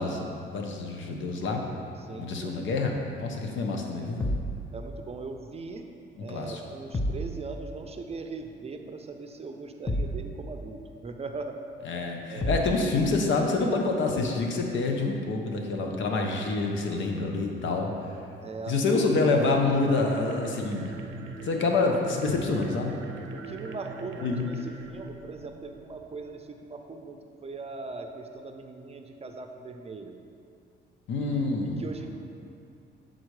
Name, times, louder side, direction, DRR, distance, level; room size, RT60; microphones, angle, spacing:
voice 1, 0.0-1.6 2.2-4.3 6.2-6.6 11.9-17.9 18.7-20.9 21.4-22.9 24.2-24.4 31.1-31.8, left 3 dB, 70° left, 2 dB, 0.9 m, -27 dB
voice 2, 2.0-2.6 3.3-3.8 4.7-5.9 6.2-11.6 12.3-12.7 18.4-18.8 23.3-30.2 31.1-31.4 31.8-32.1, right 3 dB, 30° right, 5 dB, 0.5 m, -40 dB
sound 1, 4.2-4.6 6.9-7.3 9.9-10.2 12.4-12.8, equal, 15° left, 0.6 m, -28 dB
sound 2, 19.8-26.1, right 4 dB, 80° right, 0.6 m, -42 dB
7.5 x 4.0 x 4.8 m, 2.6 s
cardioid pair, 90°, 20 cm